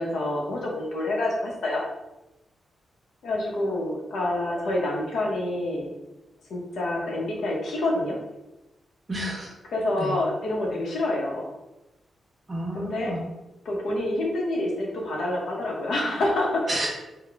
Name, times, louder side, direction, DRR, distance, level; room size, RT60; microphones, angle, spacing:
voice 1, 0.0-1.8 3.2-5.9 6.5-8.2 9.7-11.5 12.7-13.1 13.6-16.7, left 1 dB, 80° left, -2 dB, 0.8 m, -27 dB
voice 2, 9.1-9.5 10.0-10.2 12.5-13.3 16.7-16.9, right 1 dB, 35° right, -3 dB, 1.1 m, -30 dB
3.8 x 2.2 x 3.4 m, 0.98 s
wide cardioid pair, 125°, 0 cm